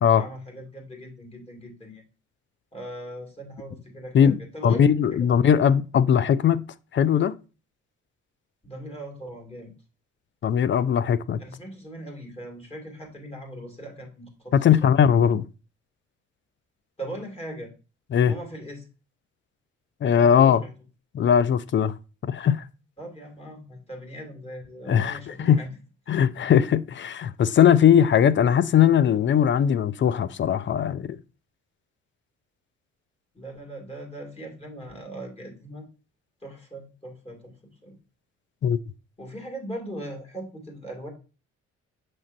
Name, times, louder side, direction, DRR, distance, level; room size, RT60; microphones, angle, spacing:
voice 1, 0.1-2.0 2.7-5.3 8.6-9.7 11.4-14.9 17.0-17.7 18.2-18.9 20.1-20.7 23.0-25.7 33.3-35.9 36.4-38.0 39.2-41.1, right 1 dB, 20° left, 2.2 m, -39 dB
voice 2, 4.6-6.6 6.9-7.4 10.4-11.4 14.5-15.4 18.1-18.3 20.0-20.6 21.1-22.0 22.2-22.6 24.9-25.6 26.1-31.2 38.6-38.8, left 8 dB, 40° left, 0.4 m, -19 dB
6.3 x 5.9 x 2.6 m
cardioid pair, 90°, 30 cm